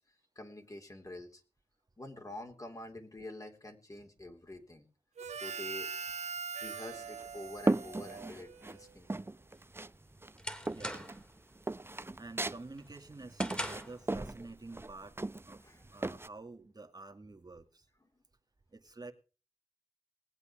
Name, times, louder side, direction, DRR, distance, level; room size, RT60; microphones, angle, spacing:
voice 1, 0.4-1.4 2.0-4.9 5.3-5.9 6.5-9.1 15.6-15.9, left 1 dB, 30° left, 5 dB, 3.5 m, -47 dB
Harmonica, 5.2-9.0, right 6 dB, 90° right, 1.0 m, -42 dB
sound 1, 6.9-8.8 9.1-10.0 10.2-16.3, right 2 dB, 20° right, 0.7 m, -36 dB
sound 2, 9.6-11.3 11.7-12.1 12.5-14.0, equal, 10° left, 3.4 m, -42 dB
voice 2, 10.7-11.0 12.1-15.2 15.5-17.9 18.7-19.1, right 3 dB, 35° right, 4 dB, 2.0 m, -49 dB
19.5 x 8.2 x 6.3 m, 0.37 s
cardioid pair, 55°, 11 cm